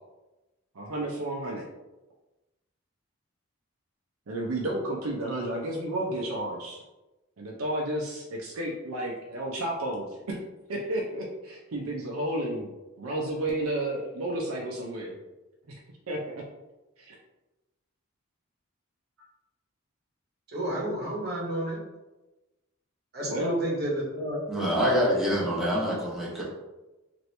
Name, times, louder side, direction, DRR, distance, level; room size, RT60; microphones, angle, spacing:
voice 1, 0.7-1.7 4.3-6.8 7.4-10.4 10.7-15.2 15.7-15.8 16.1-16.4 17.0-17.2 23.2-23.6, right 1 dB, 85° right, -2 dB, 0.5 m, -32 dB
voice 2, 20.5-21.8 23.1-24.4 25.0-25.4, right 1 dB, 50° right, -4 dB, 0.9 m, -31 dB
voice 3, 24.5-26.4, equal, ahead, -7 dB, 0.8 m, -26 dB
2.9 x 2.5 x 3.1 m, 1.1 s
head